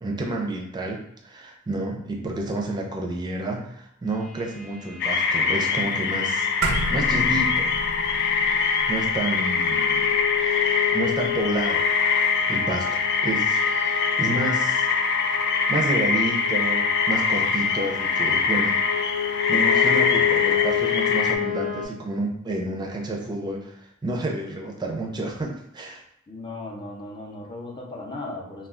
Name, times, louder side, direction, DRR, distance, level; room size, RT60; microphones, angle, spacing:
voice 1, 0.0-6.5 6.9-7.7 8.9-10.1 10.9-11.8 12.5-14.9 15.7-18.8 19.5-26.0, right 2 dB, 20° right, 0 dB, 0.5 m, -30 dB
sound 1, 4.2-21.9, left 8 dB, 85° left, 1.0 m, -30 dB
sound 2, 5.0-21.4, left 5 dB, 55° left, 0.3 m, -23 dB
sound 3, 6.6-11.2, right 2 dB, 85° right, 0.5 m, -32 dB
voice 2, 19.7-20.8 26.3-28.7, left 2 dB, 20° left, -2 dB, 0.6 m, -37 dB
2.3 x 2.3 x 3.6 m, 0.73 s
head